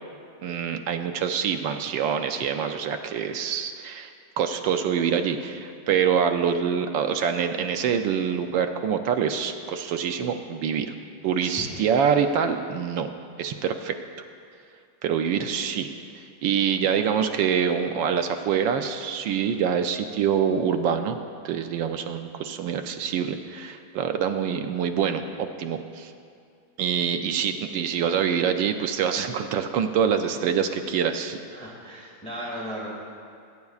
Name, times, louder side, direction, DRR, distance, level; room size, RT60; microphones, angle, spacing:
voice 1, 0.4-4.1 4.4-10.9 11.2-13.1 13.4-14.0 15.0-15.9 16.2-21.2 21.4-26.1 26.8-31.4, right 7 dB, 75° right, 7 dB, 1.2 m, -25 dB
voice 2, 11.4-12.0 31.5-32.9, equal, 5° left, -6 dB, 1.9 m, -36 dB
22.0 x 9.4 x 2.4 m, 2.4 s
omnidirectional pair, 2.2 m